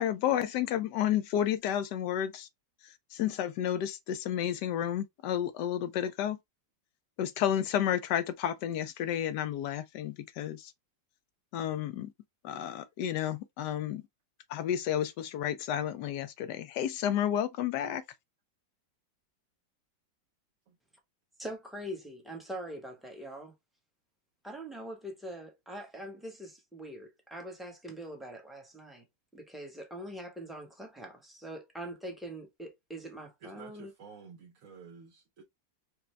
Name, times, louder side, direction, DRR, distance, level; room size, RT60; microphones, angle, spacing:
voice 1, 0.0-2.5 2.8-6.4 7.2-10.7 11.5-12.1 12.4-14.0 14.5-18.0, left 10 dB, 75° left, 1.1 m, -31 dB
voice 2, 21.4-23.5 24.4-29.0 29.3-33.9, right 1 dB, ahead, 0.7 m, -43 dB
voice 3, 33.4-35.4, right 5 dB, 55° right, 1.1 m, -51 dB
5.0 x 2.2 x 3.1 m
omnidirectional pair, 2.0 m